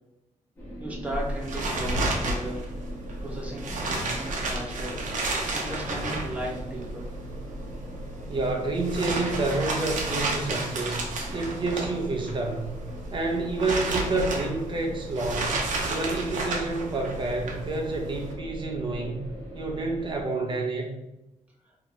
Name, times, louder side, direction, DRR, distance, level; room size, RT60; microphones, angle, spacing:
sound 1, 0.6-20.2, equal, 20° left, 1.2 m, -40 dB
voice 1, 0.8-2.7 3.2-5.0 5.5-7.1, right 1 dB, 10° right, -4 dB, 0.9 m, -35 dB
sound 2, 1.0-18.3, right 2 dB, 70° right, 0.7 m, -32 dB
voice 2, 8.3-11.1 11.3-12.8 13.1-19.2 19.5-20.9, right 2 dB, 35° right, 1 dB, 0.6 m, -29 dB
4.6 x 2.8 x 2.2 m, 0.96 s
wide cardioid pair, 130°, 13 cm